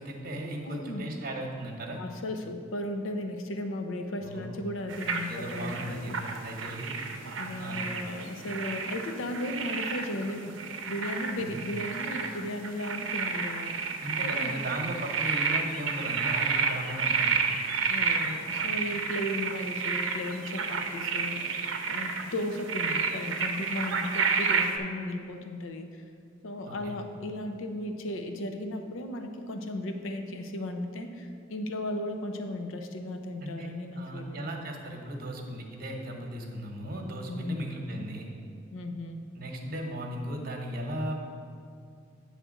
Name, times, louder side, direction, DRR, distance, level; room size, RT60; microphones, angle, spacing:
voice 1, 0.0-2.0 4.2-4.5 5.2-6.9 7.6-7.9 11.4-11.6 14.0-17.5 26.7-27.0 33.4-38.3 39.3-41.1, right 1 dB, 50° right, 2 dB, 0.9 m, -36 dB
voice 2, 0.6-1.1 2.0-6.4 7.3-13.9 14.2-14.6 17.9-26.0 26.4-34.5 37.3-37.7 38.7-39.2, left 1 dB, 80° left, 5 dB, 0.6 m, -36 dB
sound 1, 4.9-24.8, right 5 dB, 75° right, 0.6 m, -31 dB
8.9 x 3.3 x 6.3 m, 2.3 s
head